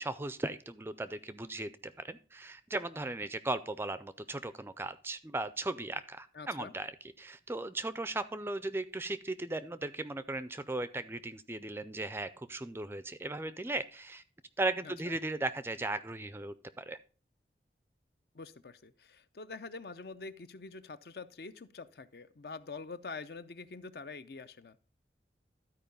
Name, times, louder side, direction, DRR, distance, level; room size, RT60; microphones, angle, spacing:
voice 1, 0.0-14.2 14.6-17.0, right 2 dB, 15° right, 14 dB, 0.4 m, -37 dB
voice 2, 6.3-6.7 14.8-15.1 18.3-24.8, left 4 dB, 60° left, 13 dB, 0.6 m, -45 dB
12.5 x 4.7 x 5.2 m, 0.37 s
head